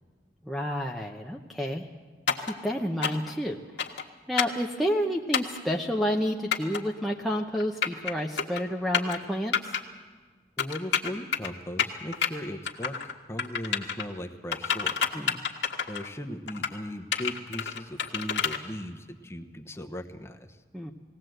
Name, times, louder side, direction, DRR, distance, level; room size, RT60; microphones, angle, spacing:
voice 1, 0.5-1.8 2.4-3.6 4.3-9.7 15.1-15.4 20.7-20.9, equal, ahead, 1 dB, 0.8 m, -30 dB
sound 1, 2.3-2.5 3.0-3.3 3.8-4.0 4.4-4.6 5.3-5.6 6.5-6.8 7.6-8.1 8.4-8.6 8.9-9.2 9.5-9.8 10.6-11.5 11.8-12.3 12.7-13.1 13.4-14.0 14.5-16.1 16.5-16.7 17.1-18.6, left 7 dB, 80° left, 1.5 m, -28 dB
voice 2, 10.6-13.0 13.3-15.1 15.9-20.6, equal, 15° left, 5 dB, 1.0 m, -38 dB
19.5 x 17.5 x 7.9 m, 1.5 s
head